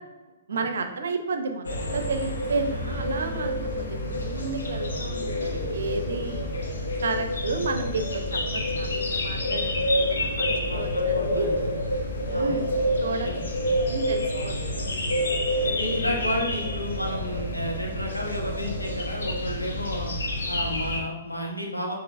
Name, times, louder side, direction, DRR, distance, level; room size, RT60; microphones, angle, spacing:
voice 1, 0.5-6.4 7.0-11.5 12.3-12.7 13.0-13.3 13.8-15.0, right 4 dB, 60° right, 6 dB, 0.5 m, -32 dB
sound 1, 1.6-21.0, left 1 dB, 65° left, 0.8 m, -28 dB
voice 2, 10.7-11.7 12.3-12.5 13.2-13.4 13.7-13.9 14.3-14.6 15.6-20.1 20.5-21.9, equal, 90° left, -1 dB, 1.1 m, -32 dB
6.7 x 2.9 x 2.6 m, 1.1 s
figure-of-eight pair, 120°, 0 cm